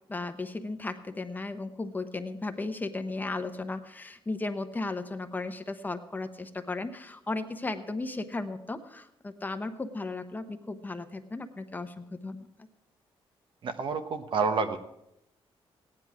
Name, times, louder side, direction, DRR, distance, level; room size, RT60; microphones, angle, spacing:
voice 1, 0.1-12.5, left 3 dB, 20° left, 8 dB, 0.9 m, -35 dB
voice 2, 13.6-14.8, right 4 dB, 55° right, 8 dB, 1.1 m, -28 dB
16.5 x 10.0 x 4.8 m, 0.84 s
cardioid pair, 120°, 10 cm